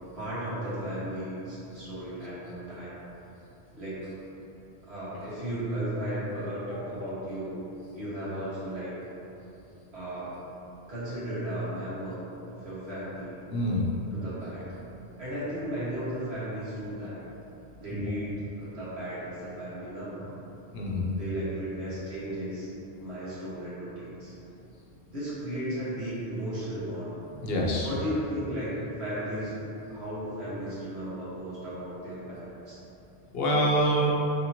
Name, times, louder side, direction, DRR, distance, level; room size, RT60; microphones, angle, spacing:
voice 1, 0.2-3.0 3.7-4.1 4.8-7.5 7.9-8.9 9.9-10.3 10.9-13.3 14.1-14.6 15.2-17.2 17.8-20.3 21.1-22.7 23.0-24.3 25.1-27.1 27.8-28.7 29.0-29.5 29.8-32.8, right 1 dB, 80° right, -11 dB, 1.7 m, -35 dB
voice 2, 13.5-13.9 17.9-18.0 20.7-21.1 27.4-27.9 33.3-34.1, equal, 70° left, -3 dB, 0.9 m, -26 dB
4.3 x 3.5 x 2.8 m, 2.9 s
omnidirectional pair, 1.1 m